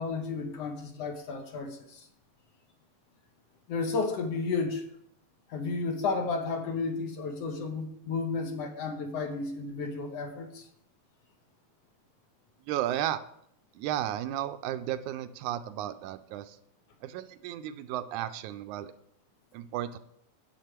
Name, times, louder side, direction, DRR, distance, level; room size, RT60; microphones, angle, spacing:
voice 1, 0.0-2.1 3.7-4.8 5.5-10.7, left 4 dB, 65° left, 5 dB, 1.8 m, -32 dB
voice 2, 12.7-13.2 13.8-16.6 17.0-18.9 19.5-20.0, right 12 dB, 85° right, 11 dB, 2.0 m, -33 dB
10.0 x 8.0 x 4.4 m, 0.70 s
omnidirectional pair, 3.5 m